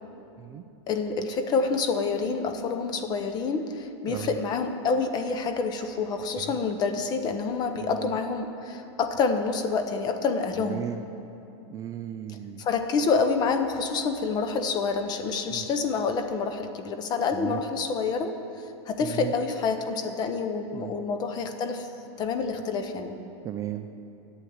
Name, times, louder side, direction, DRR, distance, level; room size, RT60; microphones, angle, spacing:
voice 1, 0.9-10.8 12.6-18.3 18.9-21.9 22.2-23.2, left 4 dB, 25° left, 7 dB, 0.9 m, -27 dB
voice 2, 7.8-8.2 10.6-11.0 11.7-12.6 15.5-15.7 17.3-17.6 19.0-19.3 20.7-20.9 23.4-23.9, right 11 dB, 20° right, 7 dB, 0.4 m, -35 dB
11.5 x 8.2 x 8.7 m, 2.8 s
supercardioid pair, 150°, 15 cm